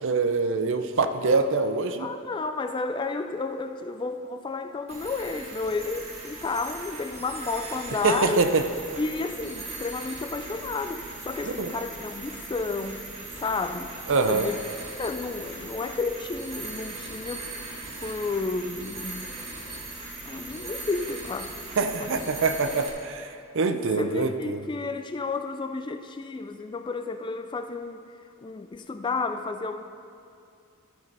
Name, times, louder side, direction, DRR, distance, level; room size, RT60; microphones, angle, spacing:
voice 1, 0.0-2.1 8.0-8.7 11.4-11.7 14.1-14.5 21.8-24.7, right 4 dB, 60° right, 8 dB, 0.6 m, -25 dB
voice 2, 2.0-8.5 9.0-13.0 13.4-13.9 14.3-14.6 15.0-17.5 18.0-19.3 20.2-21.5 22.0-22.2 23.6-28.0 28.4-29.8, left 3 dB, 20° left, 8 dB, 0.3 m, -31 dB
sound 1, 4.9-22.9, right 2 dB, 30° right, 1.7 m, -39 dB
13.0 x 5.3 x 5.5 m, 2.4 s
head